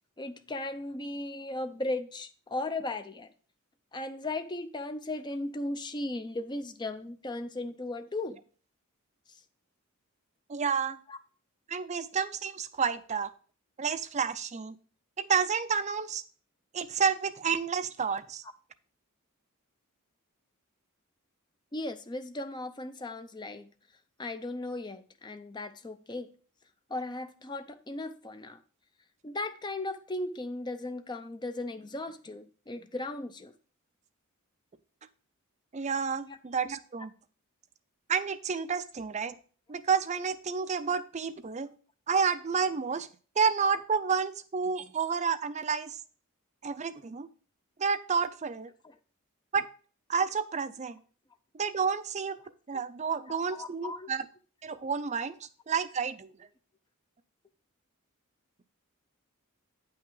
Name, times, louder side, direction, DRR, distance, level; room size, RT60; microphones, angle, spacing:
voice 1, 0.2-3.3 3.9-8.4 11.1-11.2 21.7-23.7 24.2-26.3 26.9-28.6 29.2-33.5 36.2-36.4 48.8-48.9 52.7-52.8 53.3-54.1, left 2 dB, 20° left, 9 dB, 0.5 m, -37 dB
voice 2, 10.5-11.0 11.7-13.3 13.8-14.8 15.2-16.2 16.7-18.4 35.7-37.1 38.1-39.3 39.7-41.7 42.1-43.1 43.4-46.0 46.6-47.3 47.8-48.7 49.5-49.7 50.1-51.0 51.5-52.4 52.7-54.2 54.6-55.4 55.7-56.3, right 6 dB, 30° right, 11 dB, 0.4 m, -30 dB
9.0 x 5.7 x 3.8 m, 0.41 s
head